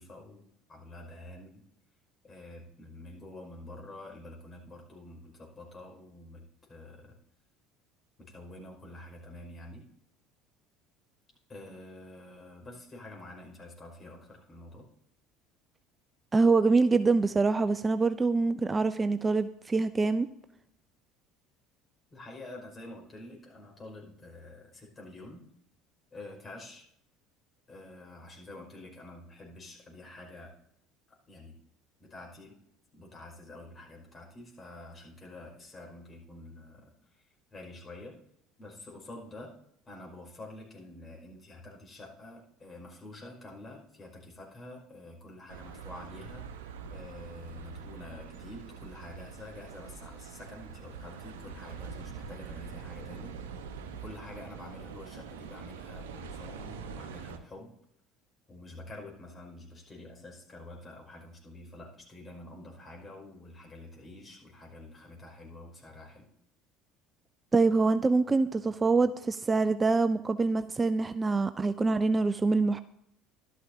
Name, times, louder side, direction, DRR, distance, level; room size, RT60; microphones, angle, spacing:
voice 1, 0.0-1.6 2.2-6.4 6.7-7.2 8.2-9.9 11.5-14.9 22.1-25.5 26.1-26.8 27.7-30.5 31.3-31.6 32.0-32.6 32.9-38.2 38.6-39.5 39.9-46.6 46.9-53.4 53.9-57.7 58.5-66.3, left 1 dB, 30° left, 0 dB, 5.4 m, -47 dB
voice 2, 16.3-20.3 67.5-72.8, right 3 dB, 25° right, 13 dB, 0.4 m, -25 dB
sound 1, 45.5-57.4, right 6 dB, 75° right, 1.0 m, -44 dB
13.5 x 12.5 x 2.8 m, 0.76 s
hypercardioid pair, 65°, 0 cm